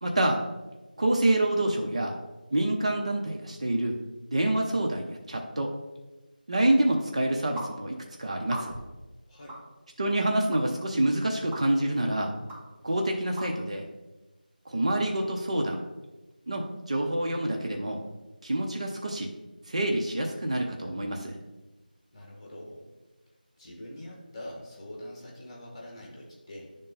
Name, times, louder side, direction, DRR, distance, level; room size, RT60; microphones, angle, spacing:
voice 1, 0.0-0.4 1.0-2.1 2.5-4.0 4.3-5.7 6.5-8.8 10.0-12.3 12.8-13.9 14.7-15.8 16.5-18.0 18.4-19.3 19.7-21.4, right 1 dB, 40° right, 1 dB, 0.7 m, -27 dB
sound 1, 7.6-7.7 8.4-8.9 9.5-9.6 10.5-10.6 11.5-11.6 12.5-12.6 13.4-13.5, right 1 dB, 15° right, 2.2 m, -38 dB
voice 2, 9.3-9.6 22.1-22.9 23.6-26.8, left 1 dB, 25° left, -2 dB, 1.5 m, -44 dB
9.6 x 3.8 x 4.0 m, 1.1 s
figure-of-eight pair, 170°, 5 cm